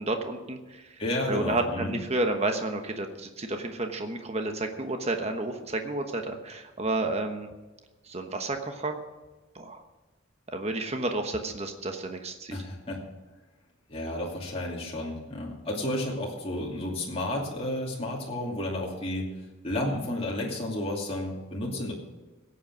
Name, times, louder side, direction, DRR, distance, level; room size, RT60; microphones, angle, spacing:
voice 1, 0.0-1.0 1.3-7.5 8.0-9.0 9.5-9.8 10.5-12.6 20.4-20.5, right 2 dB, 30° right, 5 dB, 1.1 m, -31 dB
voice 2, 1.0-2.0 12.5-13.0 13.9-19.3 19.6-21.9, left 1 dB, 30° left, -2 dB, 2.5 m, -32 dB
17.0 x 8.2 x 6.2 m, 1.2 s
head